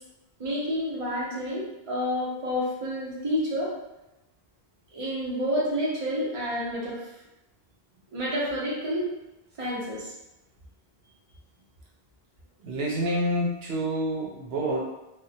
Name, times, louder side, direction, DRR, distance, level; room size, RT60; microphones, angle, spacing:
voice 1, 0.4-3.7 4.9-7.0 8.1-9.1 9.6-10.1, equal, 35° right, -6 dB, 0.7 m, -29 dB
voice 2, 12.6-14.8, right 1 dB, 80° right, -3 dB, 0.8 m, -28 dB
2.3 x 2.0 x 2.6 m, 0.96 s
omnidirectional pair, 1.0 m